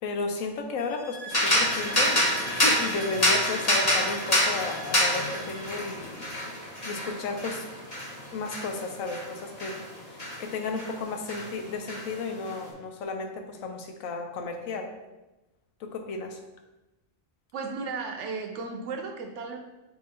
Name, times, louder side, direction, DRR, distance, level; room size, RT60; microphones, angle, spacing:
voice 1, 0.0-6.3 6.6-7.7 8.3-9.8 10.1-14.9 15.8-16.4, left 3 dB, 90° left, 4 dB, 1.0 m, -33 dB
sound 1, 0.8-5.8, right 2 dB, 65° left, 1.1 m, -42 dB
sound 2, 1.3-11.0 11.3-12.6, left 1 dB, 30° left, 1.1 m, -27 dB
voice 2, 17.5-19.6, right 4 dB, 70° right, 4 dB, 0.9 m, -34 dB
6.7 x 2.8 x 2.8 m, 1.0 s
omnidirectional pair, 1.4 m